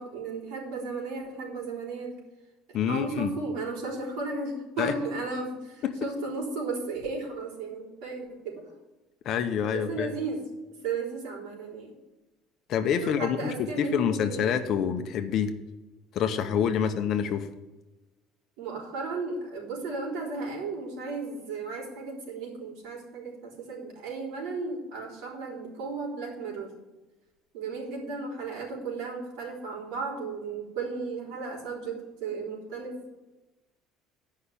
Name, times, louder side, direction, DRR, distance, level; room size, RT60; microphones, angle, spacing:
voice 1, 0.0-2.1 2.9-8.7 9.7-10.4 10.8-11.9 13.0-14.6 16.7-17.0 18.6-26.7 27.5-33.1, right 4 dB, 80° right, -2 dB, 3.9 m, -35 dB
voice 2, 2.7-3.3 4.8-4.9 5.8-6.1 9.2-10.1 12.7-15.5 16.1-17.5, left 8 dB, 40° left, 8 dB, 0.8 m, -27 dB
10.0 x 5.7 x 8.4 m, 1.1 s
cardioid pair, 175°, 0 cm